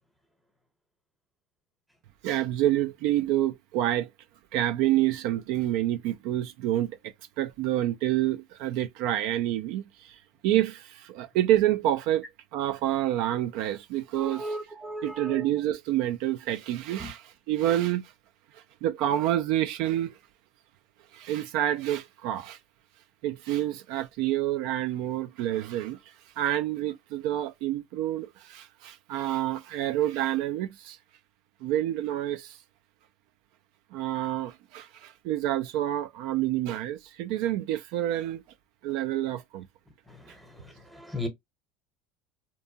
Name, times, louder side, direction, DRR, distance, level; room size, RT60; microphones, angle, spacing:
voice 1, 2.2-4.1 4.5-7.0 7.4-12.2 12.5-14.6 15.0-18.1 18.5-20.2 21.1-22.6 23.2-31.0 31.6-32.6 33.9-38.4 38.8-39.7, right 13 dB, 65° right, 0.3 m, -28 dB
voice 2, 14.2-15.5 17.0-17.1 40.1-41.3, equal, ahead, 0.8 m, -37 dB
2.6 x 2.2 x 2.7 m
supercardioid pair, 130°, 0 cm